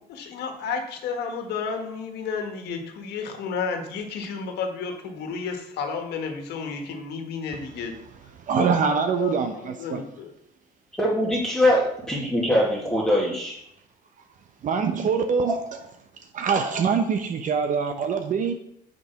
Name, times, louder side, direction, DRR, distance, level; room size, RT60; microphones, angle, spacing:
voice 1, 0.1-7.9 8.6-10.3, left 5 dB, 75° left, 5 dB, 1.5 m, -32 dB
voice 2, 8.4-10.0 14.6-15.6 16.3-18.5, right 6 dB, 50° right, 6 dB, 0.9 m, -24 dB
voice 3, 11.0-13.6, left 1 dB, 5° left, -6 dB, 2.2 m, -22 dB
6.7 x 5.3 x 5.9 m, 0.74 s
cardioid pair, 110°, 17 cm